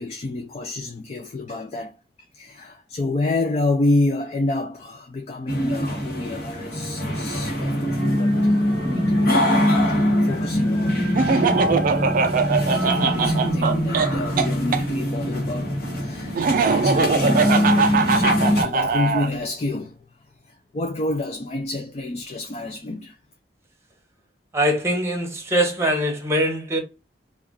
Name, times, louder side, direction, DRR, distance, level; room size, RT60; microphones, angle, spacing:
voice 1, 0.0-2.0 2.3-11.1 12.6-20.0 20.5-23.2, left 2 dB, 40° left, 0.4 m, -29 dB
sound 1, 5.5-18.6, equal, 55° left, 1.1 m, -23 dB
Laughter, 11.2-14.8 16.4-19.3, right 4 dB, 50° right, 0.4 m, -21 dB
voice 2, 24.5-26.8, equal, 15° right, 0.9 m, -22 dB
2.4 x 2.3 x 3.5 m
head